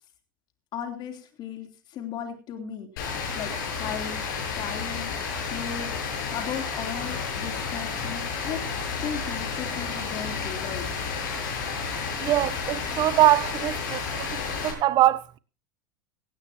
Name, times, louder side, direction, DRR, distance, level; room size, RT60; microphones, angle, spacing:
voice 1, 0.7-4.2 4.5-5.2 5.5-5.9 6.3-8.6 9.0-10.9, left 8 dB, 45° left, 3.5 m, -36 dB
Rain, 3.0-14.7, left 5 dB, 75° left, 8.0 m, -31 dB
voice 2, 12.2-15.4, right 14 dB, 45° right, 0.9 m, -23 dB
17.5 x 16.0 x 3.0 m
hypercardioid pair, 105°, 11 cm